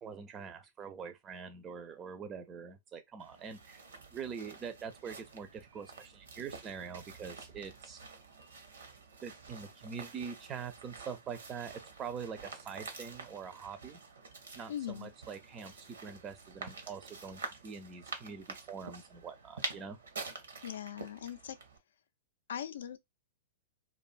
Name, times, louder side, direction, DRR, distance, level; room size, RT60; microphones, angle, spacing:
voice 1, 0.0-3.8 4.1-8.0 9.2-14.0 14.6-20.0, right 6 dB, 25° right, 0.4 m, -44 dB
sound 1, 3.2-21.8, right 4 dB, 75° right, 0.7 m, -48 dB
voice 2, 14.7-15.1 20.6-21.6 22.5-23.0, left 10 dB, 70° left, 0.3 m, -40 dB
2.5 x 2.3 x 2.4 m
figure-of-eight pair, 105°, 0 cm